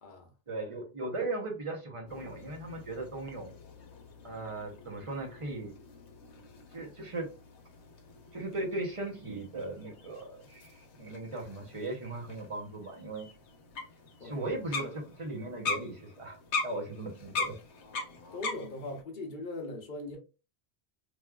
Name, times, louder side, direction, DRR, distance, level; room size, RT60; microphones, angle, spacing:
voice 1, 0.5-3.5 4.2-5.7 6.7-7.3 8.3-13.3 14.2-16.4 16.6-17.5, right 2 dB, 35° right, 0.7 m, -38 dB
sound 1, 2.1-19.0, left 4 dB, 85° left, 1.0 m, -42 dB
voice 2, 18.3-20.2, left 2 dB, 50° left, 0.8 m, -40 dB
3.2 x 2.3 x 2.2 m
omnidirectional pair, 1.1 m